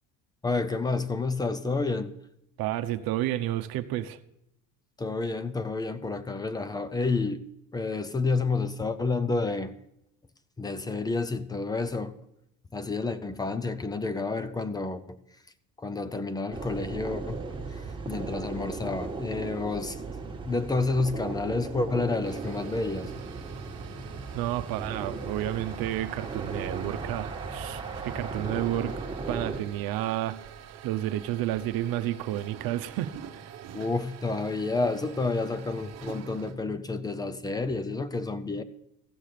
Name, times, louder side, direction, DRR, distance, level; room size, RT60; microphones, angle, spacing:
voice 1, 0.4-2.1 5.0-7.4 7.7-9.7 10.6-12.1 12.7-15.2 15.8-17.4 17.7-17.8 18.1-20.0 20.5-23.1 33.7-38.6, left 3 dB, 10° left, 0.5 m, -29 dB
voice 2, 2.6-4.2 24.3-29.0 29.3-30.4 30.8-33.1, right 13 dB, 70° right, 0.8 m, -31 dB
sound 1, 16.5-29.6, right 3 dB, 15° right, 1.5 m, -37 dB
sound 2, 22.1-36.5, right 8 dB, 45° right, 1.1 m, -46 dB
15.0 x 7.6 x 6.6 m
cardioid pair, 150°, 38 cm